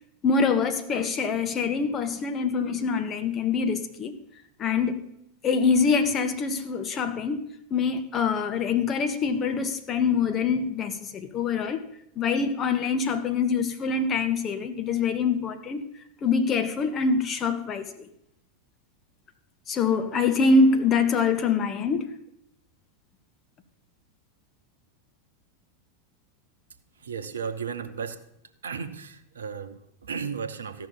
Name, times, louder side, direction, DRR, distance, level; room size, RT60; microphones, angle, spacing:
voice 1, 0.2-4.2 4.6-5.0 5.4-11.8 12.1-15.9 16.2-18.1 19.7-22.1, left 4 dB, 30° left, 1.3 m, -25 dB
voice 2, 27.0-28.2 28.6-30.9, right 6 dB, 75° right, 1.0 m, -34 dB
14.5 x 5.9 x 7.0 m
figure-of-eight pair, 90°, 0 cm